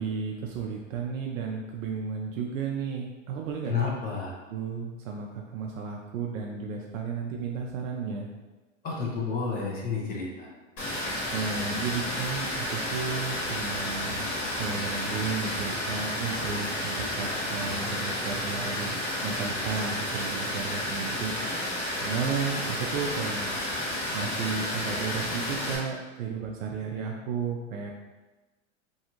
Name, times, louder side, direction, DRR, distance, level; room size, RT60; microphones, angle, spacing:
voice 1, 0.0-3.7 4.5-8.3 11.3-14.3 14.6-19.0 19.2-21.3 22.0-23.5 24.1-27.9, right 5 dB, 80° right, 0 dB, 0.5 m, -33 dB
voice 2, 3.7-4.4 8.8-10.5, left 5 dB, 25° left, -3 dB, 0.5 m, -30 dB
Water, 10.8-25.8, left 1 dB, 45° left, 1.4 m, -31 dB
2.7 x 2.3 x 2.9 m, 1.2 s
hypercardioid pair, 120°, 39 cm